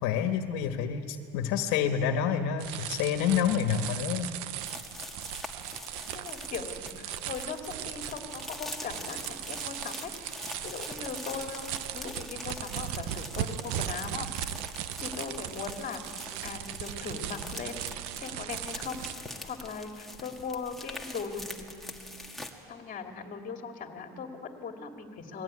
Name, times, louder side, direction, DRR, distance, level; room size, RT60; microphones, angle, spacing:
voice 1, 0.0-4.3, left 8 dB, 70° left, 6 dB, 1.6 m, -28 dB
sound 1, 2.6-19.1, right 12 dB, 70° right, 1.0 m, -38 dB
sound 2, 4.6-22.5, left 2 dB, ahead, 1.7 m, -44 dB
voice 2, 6.1-10.3 10.6-14.3 15.0-16.0 16.4-17.8 18.2-19.1 19.4-22.1 22.7-25.4, left 5 dB, 25° left, 3 dB, 2.5 m, -39 dB
29.5 x 20.5 x 9.8 m, 2.5 s
cardioid pair, 170°, 30 cm